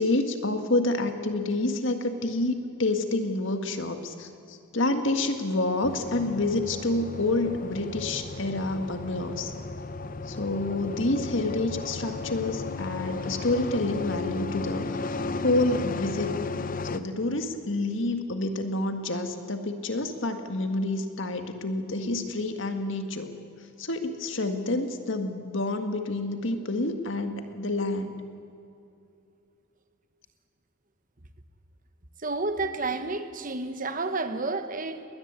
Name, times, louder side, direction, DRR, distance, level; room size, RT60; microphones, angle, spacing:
voice 1, 0.0-9.5 10.3-16.3 16.9-23.3 23.8-28.1, left 2 dB, 65° left, 7 dB, 1.9 m, -28 dB
sound 1, 5.8-17.0, left 3 dB, 40° left, 0.8 m, -35 dB
voice 2, 32.2-35.1, right 3 dB, 40° right, 9 dB, 1.2 m, -30 dB
21.5 x 20.0 x 8.3 m, 2.6 s
head